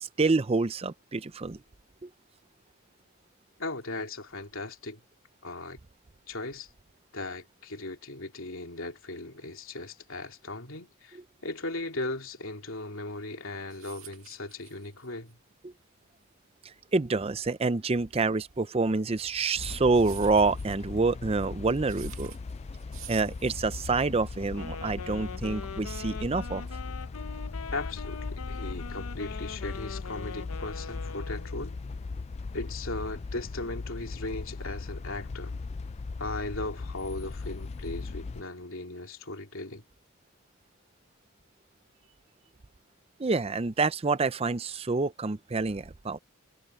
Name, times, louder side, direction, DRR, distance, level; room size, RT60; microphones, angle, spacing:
voice 1, 0.0-1.6 2.0-2.1 15.6-15.7 16.9-22.3 23.1-26.6 43.2-46.2, right 3 dB, 25° right, 0.5 m, -27 dB
voice 2, 3.6-5.0 5.4-5.8 6.3-6.7 7.1-15.4 27.7-31.8 32.5-35.6 36.2-39.8, left 2 dB, 65° left, 3.1 m, -37 dB
sound 1, 13.3-24.1, right 14 dB, 70° right, 2.0 m, -51 dB
sound 2, 19.6-38.4, left 3 dB, 30° left, 0.3 m, -38 dB
Wind instrument woodwind instrument, 24.5-31.7, left 5 dB, 85° left, 0.8 m, -42 dB
head